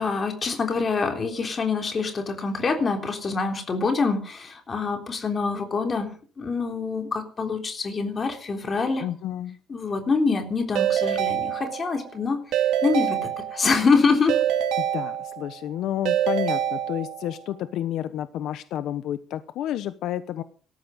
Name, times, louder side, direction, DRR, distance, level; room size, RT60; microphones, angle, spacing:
voice 1, 0.0-9.0 9.7-12.4 12.8-14.4, left 4 dB, 25° left, 5 dB, 3.5 m, -25 dB
voice 2, 9.0-9.6 14.8-20.4, left 11 dB, 75° left, 12 dB, 1.0 m, -30 dB
Keyboard (musical) / Ringtone, 10.8-12.1 12.5-13.8 14.3-15.6 16.1-17.4, right 10 dB, 85° right, 2.5 m, -26 dB
18.5 x 14.0 x 5.3 m, 0.42 s
cardioid pair, 170°, 0 cm